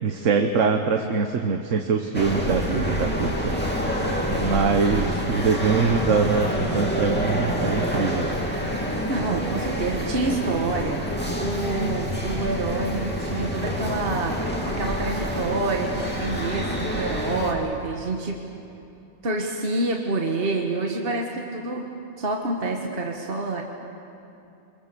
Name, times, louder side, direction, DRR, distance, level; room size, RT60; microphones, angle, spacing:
voice 1, 0.0-3.9 4.3-8.3, right 5 dB, 70° right, 5 dB, 1.4 m, -23 dB
sound 1, 2.1-17.5, equal, 10° left, 2.7 m, -27 dB
voice 2, 9.1-18.4 19.2-21.9 22.2-23.6, right 3 dB, 45° right, 1 dB, 1.6 m, -27 dB
27.0 x 22.0 x 6.9 m, 2.7 s
omnidirectional pair, 1.3 m